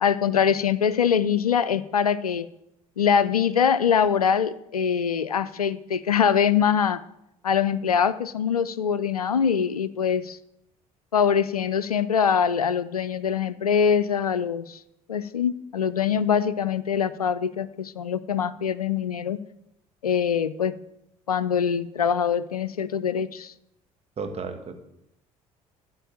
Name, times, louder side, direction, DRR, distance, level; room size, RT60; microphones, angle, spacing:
voice 1, 0.0-2.5 3.0-7.0 7.4-10.4 11.1-14.8 15.1-19.4 20.0-20.8 21.3-23.5, left 7 dB, 85° left, 17 dB, 0.4 m, -23 dB
voice 2, 24.2-24.8, right 4 dB, 35° right, 6 dB, 1.7 m, -33 dB
13.5 x 4.5 x 8.7 m, 0.81 s
figure-of-eight pair, 55°, 19 cm